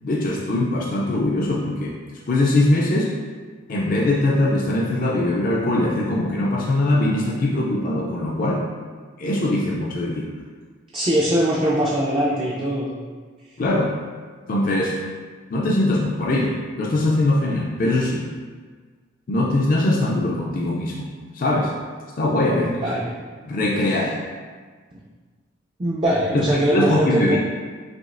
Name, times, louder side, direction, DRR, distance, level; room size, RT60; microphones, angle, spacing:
voice 1, 0.0-3.1 3.7-8.7 9.2-10.3 13.6-14.0 14.5-15.0 15.5-18.3 19.3-21.1 21.3-21.7 22.2-22.9 23.4-24.3 26.3-27.4, left 1 dB, 40° left, -3 dB, 0.4 m, -21 dB
voice 2, 10.9-12.9 22.5-23.2 25.8-27.4, right 1 dB, 25° right, -7 dB, 0.4 m, -21 dB
6.1 x 2.4 x 2.4 m, 1.5 s
head